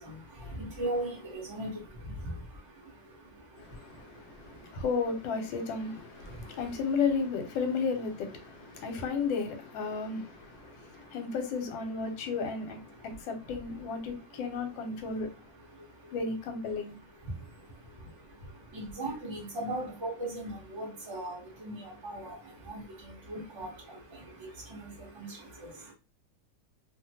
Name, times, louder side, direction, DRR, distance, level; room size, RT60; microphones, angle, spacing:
voice 1, 0.0-4.8 5.8-6.8 8.6-9.1 9.9-11.3 12.9-13.5 14.0-14.4 14.9-16.2 17.1-25.9, right 1 dB, 25° right, 0.6 m, -41 dB
voice 2, 3.6-15.3 16.1-16.9, left 5 dB, 80° left, 1.4 m, -33 dB
3.1 x 2.1 x 2.7 m
omnidirectional pair, 2.1 m